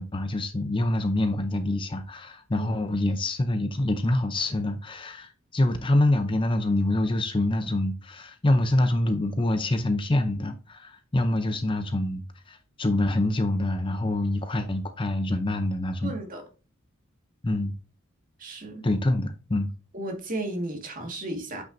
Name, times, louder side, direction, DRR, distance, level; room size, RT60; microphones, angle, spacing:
voice 1, 0.0-16.1 17.4-17.7 18.8-19.7, left 1 dB, 25° left, 0.6 m, -26 dB
voice 2, 2.5-2.9 16.0-16.4 18.4-18.8 19.9-21.6, right 1 dB, 40° right, 1.9 m, -34 dB
8.8 x 5.6 x 2.6 m
head